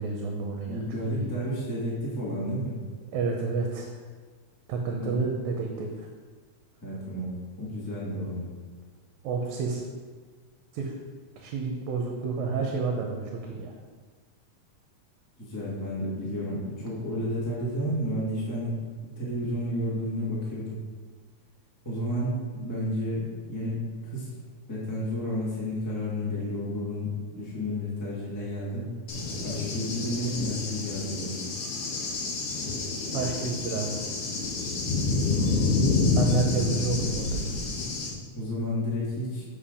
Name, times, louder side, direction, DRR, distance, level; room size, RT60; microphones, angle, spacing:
voice 1, 0.0-0.9 1.1-1.3 3.1-3.9 4.7-5.9 9.2-9.8 10.7-10.9 11.4-13.8 33.1-34.0 36.2-37.4, right 4 dB, 75° right, 2 dB, 1.9 m, -30 dB
voice 2, 0.7-2.8 5.0-5.1 6.8-8.5 15.4-18.7 19.2-20.7 21.8-24.3 24.7-28.9 29.4-31.4 38.3-39.4, equal, 10° left, -7 dB, 0.9 m, -31 dB
Cricket / Thunder, 29.1-38.1, left 3 dB, 60° left, 1.8 m, -28 dB
7.3 x 4.8 x 5.1 m, 1.5 s
omnidirectional pair, 3.6 m